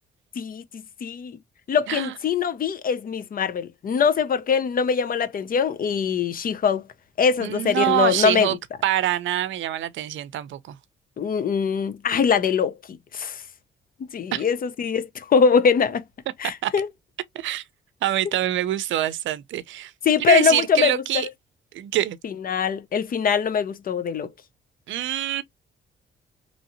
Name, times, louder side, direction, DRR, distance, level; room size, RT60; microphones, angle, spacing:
voice 1, 0.4-1.4 1.7-6.9 7.2-8.5 11.2-13.4 14.1-16.0 16.4-16.9 20.0-20.9 22.2-24.3, left 6 dB, 45° left, 0.6 m, -22 dB
voice 2, 7.4-8.6 8.8-10.8 14.3-14.4 16.6-16.7 17.3-17.6 18.0-19.9 20.3-21.3 21.7-22.2 24.9-25.4, right 13 dB, 75° right, 0.6 m, -25 dB
3.1 x 2.7 x 2.6 m
cardioid pair, 90°, 20 cm